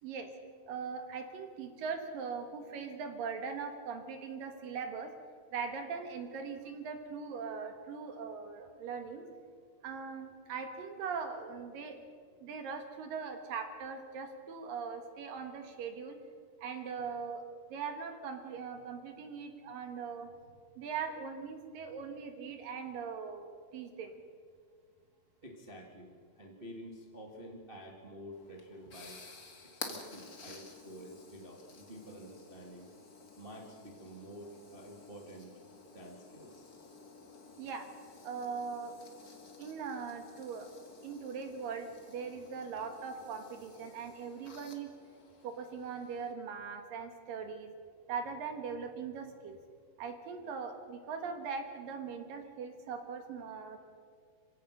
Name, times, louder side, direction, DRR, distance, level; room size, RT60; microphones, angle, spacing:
voice 1, 0.7-5.1 5.5-9.2 9.8-12.0 12.4-16.2 16.6-17.4 17.7-20.3 20.8-24.1 37.6-37.9 38.2-38.9 39.6-40.7 41.0-44.9 45.4-47.7 48.1-49.6 50.0-53.8, right 5 dB, 65° right, 6 dB, 2.7 m, -40 dB
voice 2, 25.4-29.2 29.7-32.9 33.4-35.5 35.9-36.7, equal, 90° right, 0 dB, 0.5 m, -49 dB
sound 1, 28.3-46.3, left 4 dB, 50° left, 1.1 m, -52 dB
26.5 x 16.5 x 6.7 m, 2.1 s
omnidirectional pair, 4.9 m